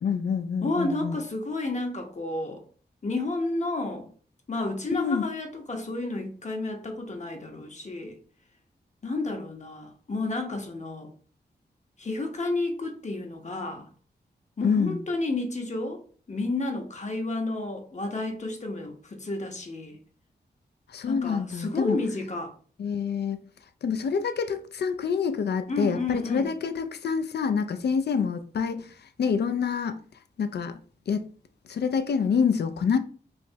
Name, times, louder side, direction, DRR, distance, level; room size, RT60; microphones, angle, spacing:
voice 1, 0.0-1.2 4.9-5.3 14.6-15.0 20.9-22.0 22.8-23.4 23.8-28.9 29.2-30.0 30.4-30.7 31.1-31.3 31.7-33.0, left 6 dB, 70° left, 0.4 m, -27 dB
voice 2, 0.6-2.6 3.0-4.1 4.5-8.2 9.0-11.1 12.0-13.9 14.6-16.0 16.3-20.0 21.1-22.5 25.7-26.5, left 2 dB, 40° left, 0.8 m, -31 dB
3.2 x 2.9 x 2.7 m
cardioid pair, 55°, 18 cm